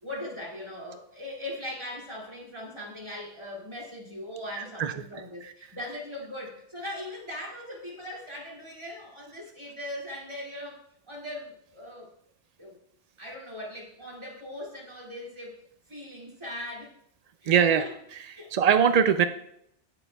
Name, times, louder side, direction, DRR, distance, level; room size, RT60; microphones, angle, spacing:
voice 1, 0.0-10.8 11.1-12.1 12.6-12.8 13.2-15.6 15.9-16.9 17.4-17.9 18.4-18.7, left 1 dB, 25° right, -3 dB, 2.4 m, -40 dB
voice 2, 4.5-4.9 5.4-5.5 17.5-17.8 18.3-19.2, right 7 dB, 70° right, 9 dB, 0.3 m, -22 dB
17.0 x 7.0 x 2.3 m, 0.72 s
omnidirectional pair, 1.2 m